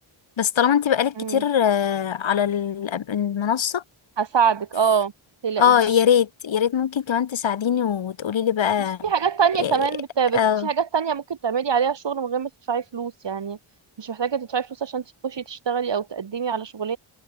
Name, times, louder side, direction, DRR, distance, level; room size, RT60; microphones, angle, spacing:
voice 1, 0.4-3.8 5.6-9.0 9.6-9.8 10.3-10.7, left 8 dB, 65° left, 2.2 m, -22 dB
voice 2, 4.2-5.1 5.4-6.0 9.0-13.6 14.0-17.0, right 7 dB, 60° right, 5.1 m, -25 dB
cardioid pair, 80°, 49 cm